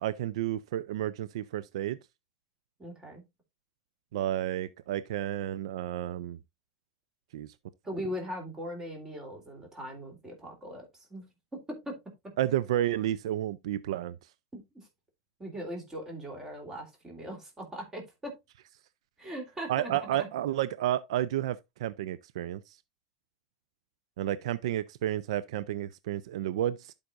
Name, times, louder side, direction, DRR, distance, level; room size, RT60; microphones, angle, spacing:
voice 1, 0.0-2.0 4.1-6.4 7.3-7.5 12.4-14.2 19.7-22.8 24.2-26.9, right 12 dB, 80° right, 0.4 m, -31 dB
voice 2, 2.8-3.2 7.8-11.2 11.8-11.9 14.5-14.9 15.4-18.3 19.2-20.3, equal, 15° right, 3.0 m, -40 dB
11.5 x 5.3 x 2.4 m
supercardioid pair, 130°, 3 cm